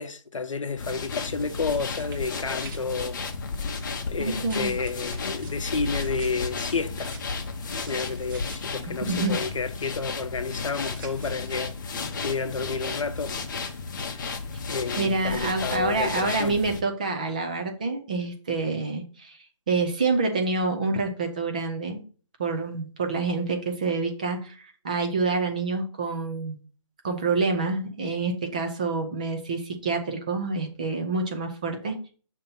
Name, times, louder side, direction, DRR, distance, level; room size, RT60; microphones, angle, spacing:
voice 1, 0.0-3.2 3.6-3.8 4.1-7.2 7.9-13.3 14.1-14.3 14.7-16.6, left 4 dB, 75° left, 0.8 m, -31 dB
sound 1, 0.8-16.8, left 4 dB, 35° left, 0.7 m, -33 dB
sound 2, 1.3-2.8 4.4-8.6 10.7-11.7, right 3 dB, 40° right, 1.9 m, -48 dB
voice 2, 4.2-4.7 8.8-9.5 15.0-19.4 19.7-22.0 22.4-26.6 27.0-32.1, right 3 dB, 15° right, 0.4 m, -27 dB
6.5 x 2.8 x 5.4 m
hypercardioid pair, 160°, 17 cm